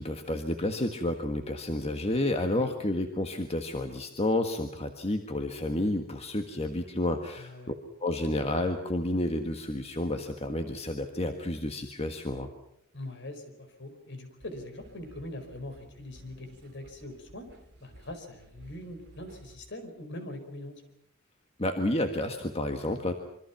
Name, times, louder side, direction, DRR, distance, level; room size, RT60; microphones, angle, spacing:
voice 1, 0.0-7.7 8.0-12.5 21.6-23.1, left 1 dB, 30° left, 5 dB, 1.6 m, -30 dB
voice 2, 7.4-7.7 12.9-17.5 17.8-20.8, left 1 dB, 60° left, 7 dB, 4.9 m, -42 dB
sound 1, 14.4-19.6, right 1 dB, 55° right, 2.6 m, -55 dB
26.5 x 25.0 x 5.9 m, 0.74 s
head